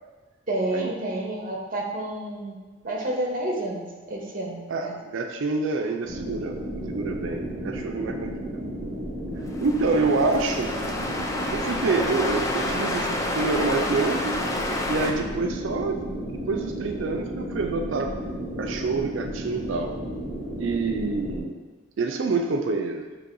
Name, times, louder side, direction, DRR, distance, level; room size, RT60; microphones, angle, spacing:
voice 1, 0.5-2.6 2.8-5.0, right 1 dB, 45° right, -1 dB, 0.8 m, -30 dB
voice 2, 4.7-6.6 6.9-8.3 9.6-10.7 11.5-14.4 14.9-16.0 16.3-18.1 18.6-19.9 20.6-21.6 22.0-23.1, right 3 dB, 70° right, 4 dB, 0.4 m, -27 dB
sound 1, 6.1-21.4, right 1 dB, 10° right, 0.8 m, -33 dB
sound 2, 9.5-15.1, left 2 dB, 15° left, 0.3 m, -29 dB
6.0 x 3.0 x 2.6 m, 1.3 s
head